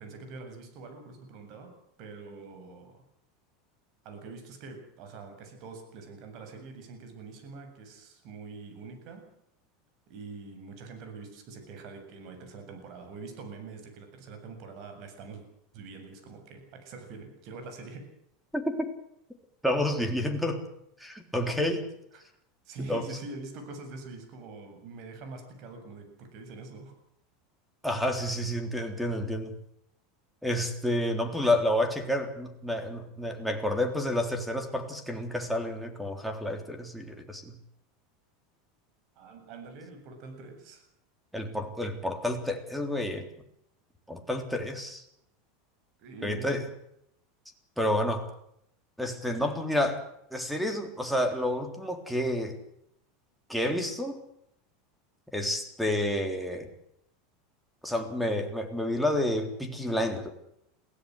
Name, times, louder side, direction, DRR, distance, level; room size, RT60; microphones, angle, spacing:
voice 1, 0.0-3.0 4.0-9.3 10.1-15.4 15.7-18.1 22.1-22.2 22.6-26.9 39.2-40.8 46.0-46.6, right 3 dB, 55° right, 6 dB, 7.5 m, -44 dB
voice 2, 18.5-18.9 19.6-20.6 21.0-21.9 22.8-23.0 27.8-29.5 30.4-37.6 41.3-43.3 44.1-45.0 46.2-46.7 47.8-48.3 49.0-50.0 50.3-52.6 53.5-54.2 55.3-56.7 57.8-60.3, left 1 dB, ahead, 6 dB, 3.6 m, -29 dB
23.0 x 16.5 x 7.9 m, 0.75 s
supercardioid pair, 125°, 0 cm